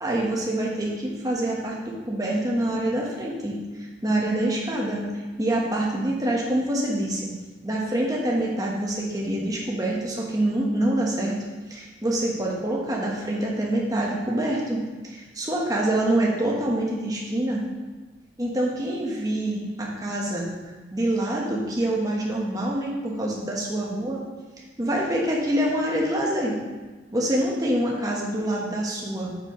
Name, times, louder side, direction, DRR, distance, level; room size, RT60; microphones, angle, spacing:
voice 1, 0.0-5.0 5.4-7.3 7.6-11.4 11.7-17.6 18.4-20.5 20.9-24.2 24.8-26.6 27.1-29.4, right 1 dB, 20° right, -3 dB, 1.3 m, -26 dB
8.7 x 7.2 x 3.2 m, 1.3 s
head